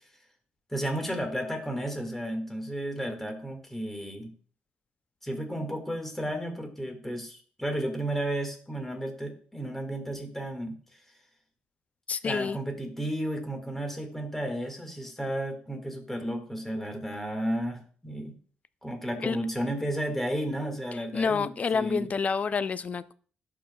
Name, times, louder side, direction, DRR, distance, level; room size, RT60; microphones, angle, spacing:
voice 1, 0.7-4.3 5.2-10.7 12.2-18.3 18.8-22.1, right 1 dB, 5° left, 3 dB, 1.7 m, -33 dB
voice 2, 12.1-12.6 19.2-19.4 21.1-23.1, left 5 dB, 40° left, 15 dB, 0.3 m, -28 dB
11.5 x 4.7 x 2.2 m, 0.43 s
cardioid pair, 100°, 4 cm